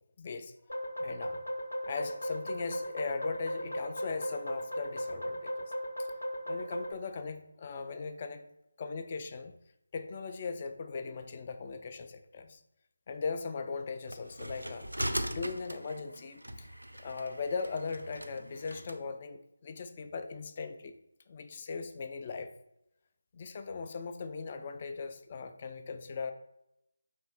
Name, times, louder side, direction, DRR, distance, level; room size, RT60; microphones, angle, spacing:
voice 1, 0.2-0.5 1.0-1.4 1.9-5.6 6.0-6.1 6.5-8.4 8.8-9.5 9.9-12.6 13.1-16.7 17.0-20.9 21.3-22.5 23.3-26.3, left 4 dB, 30° left, 7 dB, 0.3 m, -39 dB
sound 1, 0.7-6.9, equal, 75° left, 0.6 m, -37 dB
sound 2, 14.1-19.0, equal, 85° right, 0.4 m, -40 dB
3.3 x 2.9 x 4.0 m, 0.85 s
figure-of-eight pair, 155°, 0 cm